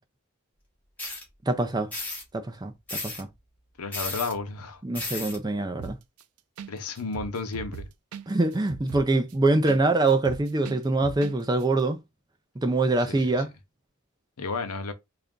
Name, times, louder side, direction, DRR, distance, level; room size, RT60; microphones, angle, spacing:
sound 1, 1.0-1.2 1.9-2.2 2.9-3.2 3.9-4.3 4.9-5.4, left 2 dB, 5° left, 1.3 m, -33 dB
voice 1, 1.5-1.9 2.3-3.3 4.8-6.0 8.3-12.0 12.6-13.5, right 2 dB, 20° right, 0.4 m, -24 dB
voice 2, 3.8-4.8 6.7-7.9 13.1-13.3 14.4-14.9, left 4 dB, 90° left, 0.7 m, -32 dB
sound 2, 5.8-6.2 6.6-6.7 7.0-9.8 10.1-11.3 11.6-11.7, right 7 dB, 85° right, 0.4 m, -39 dB
3.4 x 2.6 x 3.6 m
head